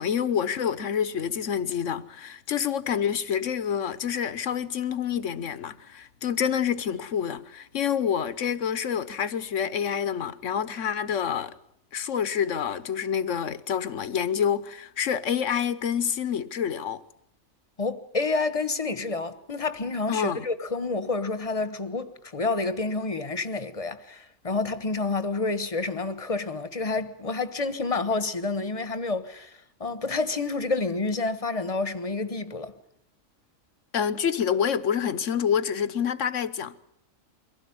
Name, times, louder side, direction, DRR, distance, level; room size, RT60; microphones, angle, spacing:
voice 1, 0.0-11.5 11.9-17.0 20.1-20.5 33.9-36.8, left 8 dB, 65° left, 1.4 m, -27 dB
voice 2, 17.8-32.7, left 3 dB, 25° left, 1.3 m, -29 dB
24.0 x 16.5 x 9.6 m
omnidirectional pair, 1.4 m